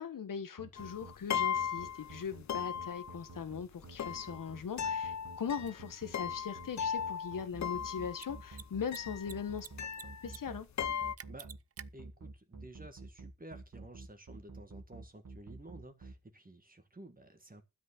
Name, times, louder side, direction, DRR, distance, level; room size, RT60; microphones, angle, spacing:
voice 1, 0.0-9.7 10.2-10.7, left 7 dB, 80° left, 1.3 m, -40 dB
sound 1, 0.6-16.1, right 3 dB, 70° right, 2.2 m, -49 dB
sound 2, 0.8-2.2 2.5-3.4 4.0-8.5 8.9-10.5 10.8-11.2, left 8 dB, 60° left, 0.6 m, -37 dB
Mechanisms, 5.6-5.7 8.1-8.3 8.5-8.6 8.9-9.7 9.9-10.4 10.6-10.7 11.2-11.8, right 7 dB, 50° right, 0.6 m, -47 dB
voice 2, 11.9-17.6, right 1 dB, 25° right, 1.7 m, -53 dB
12.5 x 5.3 x 8.3 m
wide cardioid pair, 90°, 32 cm